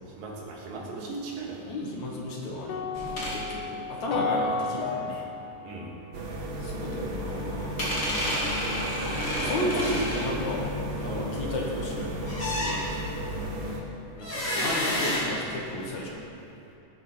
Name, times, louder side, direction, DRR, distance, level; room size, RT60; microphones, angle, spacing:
voice 1, 0.2-1.7 5.6-6.0 9.3-10.2 11.1-11.3, right 3 dB, 80° right, -2 dB, 3.5 m, -37 dB
voice 2, 1.7-2.9 3.3-5.2 6.6-7.8 9.4-10.7 11.0-13.0 14.1-16.2, left 1 dB, 60° left, -3 dB, 2.9 m, -33 dB
sound 1, 2.7-7.0, left 4 dB, 75° left, 1.4 m, -33 dB
sound 2, 2.9-3.4 7.8-11.0 12.3-13.2 14.2-16.0, equal, 30° left, 3.6 m, -30 dB
sound 3, 6.1-13.8, equal, 55° right, 2.2 m, -34 dB
19.0 x 9.2 x 4.4 m, 2.7 s
omnidirectional pair, 3.8 m